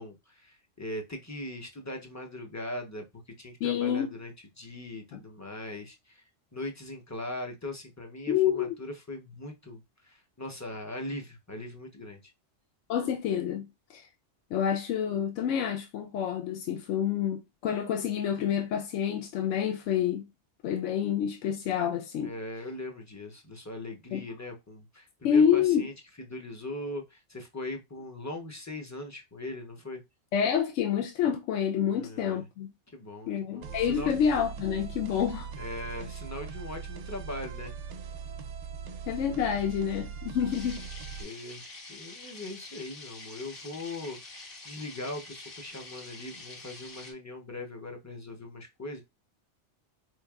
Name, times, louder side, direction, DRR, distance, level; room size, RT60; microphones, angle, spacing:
voice 1, 0.0-4.3 4.6-6.2 6.5-12.2 22.2-25.9 26.3-30.0 31.9-32.4 32.9-34.2 35.6-37.7 41.2-49.0, left 1 dB, 20° left, 0.4 m, -40 dB
voice 2, 3.6-4.1 8.3-8.7 12.9-13.6 13.9-14.0 14.5-20.2 20.6-22.3 24.1-24.2 25.2-25.8 30.3-32.7 33.3-35.5 39.1-40.8, left 8 dB, 90° left, 0.9 m, -28 dB
sound 1, 33.6-41.2, right 6 dB, 85° right, 0.9 m, -40 dB
sound 2, 40.5-47.1, left 3 dB, 50° left, 1.2 m, -46 dB
4.2 x 3.1 x 2.3 m
omnidirectional pair, 1.2 m